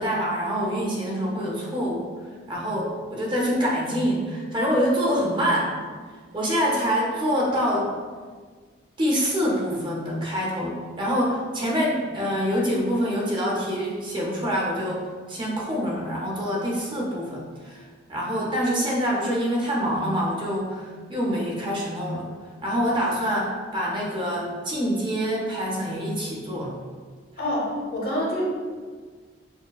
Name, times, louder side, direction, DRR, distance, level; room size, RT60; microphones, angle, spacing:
voice 1, 0.0-2.1 2.5-5.8 6.3-7.9 9.0-17.8 18.1-22.3 22.6-26.8, equal, 25° right, -3 dB, 0.5 m, -25 dB
voice 2, 27.4-28.4, left 1 dB, 50° left, -4 dB, 0.9 m, -27 dB
6.2 x 2.1 x 2.3 m, 1.6 s
head